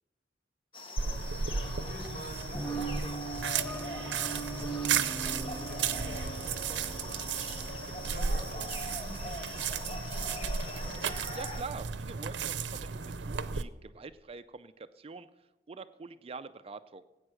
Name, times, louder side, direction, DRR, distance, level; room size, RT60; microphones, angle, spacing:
sound 1, 0.7-11.6, left 2 dB, 30° left, 1.1 m, -43 dB
voice 1, 1.0-7.4 7.8-11.2, equal, 50° left, -2 dB, 4.7 m, -48 dB
sound 2, 1.0-13.6, right 6 dB, 75° right, 0.6 m, -34 dB
sound 3, 2.5-9.9, right 3 dB, 10° left, 0.6 m, -41 dB
voice 2, 11.3-15.3 15.7-17.0, right 4 dB, 35° right, 11 dB, 0.4 m, -45 dB
17.5 x 8.9 x 6.3 m, 1.1 s
head